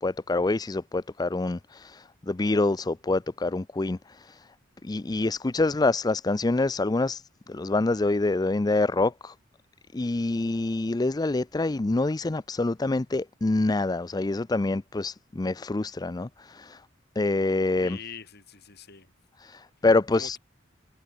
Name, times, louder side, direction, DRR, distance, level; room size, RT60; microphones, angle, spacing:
voice 1, 0.0-4.4 4.8-7.2 7.5-9.3 9.9-16.8 17.2-18.0 19.4-20.4, left 2 dB, 20° left, 0.5 m, -26 dB
voice 2, 17.8-19.1 20.1-20.4, left 5 dB, 60° left, 6.4 m, -43 dB
head